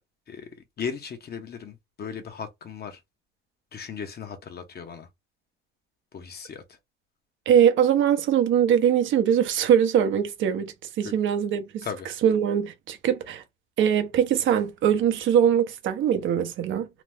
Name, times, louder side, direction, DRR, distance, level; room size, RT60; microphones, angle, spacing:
voice 1, 0.8-3.0 3.7-5.1 6.1-6.6 11.0-11.1 11.8-12.1, left 6 dB, 55° left, 0.9 m, -36 dB
voice 2, 7.5-11.7 12.2-13.4 13.8-16.9, right 9 dB, 75° right, 0.7 m, -22 dB
2.9 x 2.0 x 3.4 m
cardioid pair, 90°, 20 cm